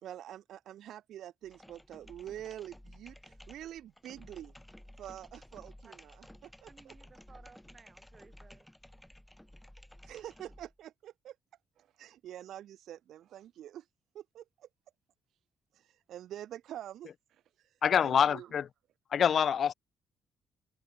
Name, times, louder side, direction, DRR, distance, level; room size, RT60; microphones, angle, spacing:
voice 1, 0.0-4.5 5.0-6.9 10.0-11.3 11.8-13.8 14.1-14.7 15.7-17.1 18.0-18.5, right 11 dB, 75° right, 3.2 m, -46 dB
sound 1, 1.4-10.7, left 1 dB, 5° left, 1.4 m, -54 dB
voice 2, 6.7-8.7, right 4 dB, 35° right, 3.2 m, -58 dB
voice 3, 17.8-18.7 19.1-19.7, left 8 dB, 55° left, 0.5 m, -26 dB
cardioid pair, 90°, 0 cm